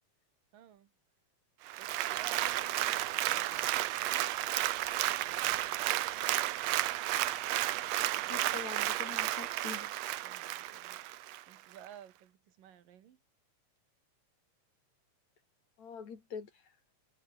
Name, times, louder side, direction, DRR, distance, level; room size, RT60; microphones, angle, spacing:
voice 1, 0.5-0.9 1.8-4.3 5.2-5.8 8.2-8.4 10.2-11.0 11.5-13.2, right 10 dB, 85° right, 3.5 m, -55 dB
Applause, 1.7-11.4 11.9-12.0, right 14 dB, 70° right, 1.7 m, -33 dB
voice 2, 8.3-9.9 15.8-16.5, left 6 dB, 55° left, 4.2 m, -44 dB
omnidirectional pair, 3.8 m